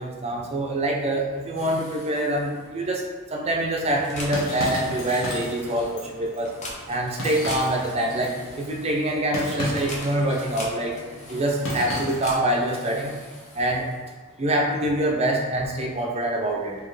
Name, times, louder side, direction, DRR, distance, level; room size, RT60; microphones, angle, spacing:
voice 1, 0.0-3.0 3.3-6.5 6.9-10.9 11.3-13.1 13.5-13.9 14.4-16.8, right 1 dB, 25° right, 0 dB, 0.5 m, -25 dB
sound 1, 1.6-14.3, left 1 dB, 30° left, 0.6 m, -42 dB
sound 2, 3.8-12.5, equal, 60° left, 1.0 m, -35 dB
4.2 x 2.8 x 3.2 m, 1.4 s
head